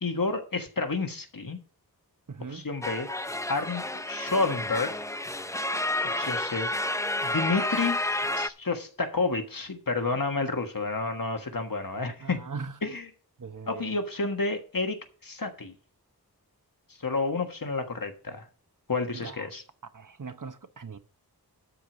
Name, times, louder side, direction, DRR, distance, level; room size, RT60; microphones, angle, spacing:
voice 1, 0.0-1.6 2.5-3.1 3.5-5.0 6.1-6.7 7.2-8.0 8.4-12.4 12.8-13.0 13.7-15.7 17.0-18.4 18.9-19.6, left 3 dB, 60° left, 1.5 m, -30 dB
voice 2, 2.3-2.7 12.2-12.8 13.4-13.9 19.1-19.5 19.9-21.0, right 5 dB, 55° right, 1.0 m, -40 dB
sound 1, 2.8-8.5, left 1 dB, 10° left, 0.5 m, -30 dB
12.5 x 4.8 x 6.0 m
wide cardioid pair, 60°, 38 cm